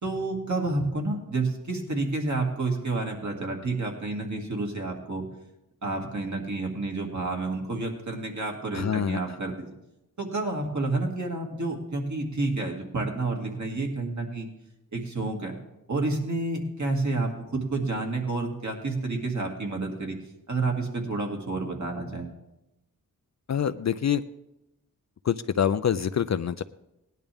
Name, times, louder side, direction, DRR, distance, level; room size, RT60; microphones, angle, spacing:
voice 1, 0.0-5.3 5.8-9.7 10.2-14.5 14.9-15.6 15.9-20.2 20.5-22.3, right 2 dB, 55° right, 1 dB, 2.4 m, -29 dB
voice 2, 8.7-9.2 23.5-24.2 25.2-26.6, left 8 dB, 50° left, 11 dB, 0.4 m, -26 dB
18.0 x 11.0 x 3.5 m, 0.91 s
wide cardioid pair, 65°, 35 cm